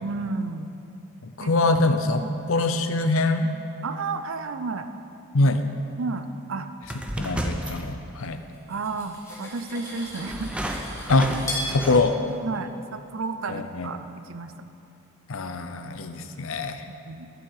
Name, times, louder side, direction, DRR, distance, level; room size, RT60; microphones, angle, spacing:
voice 1, 0.0-0.7 1.4-1.5 2.2-2.4 3.8-4.9 6.0-6.7 8.7-10.6 12.4-14.7 16.9-17.3, right 4 dB, 65° right, 9 dB, 0.6 m, -32 dB
voice 2, 1.2-2.2 2.5-3.5 5.3-5.6 7.2-8.4 11.1-11.3 11.7-12.2 13.5-13.9 15.3-16.8, left 2 dB, 70° left, 8 dB, 0.7 m, -23 dB
sound 1, 6.8-8.4 9.3-9.4 10.2-12.3, equal, 5° right, 0.5 m, -32 dB
Cutlery silverware, 8.5-11.7, left 1 dB, 15° left, 1.9 m, -36 dB
11.5 x 9.3 x 4.8 m, 2.7 s
head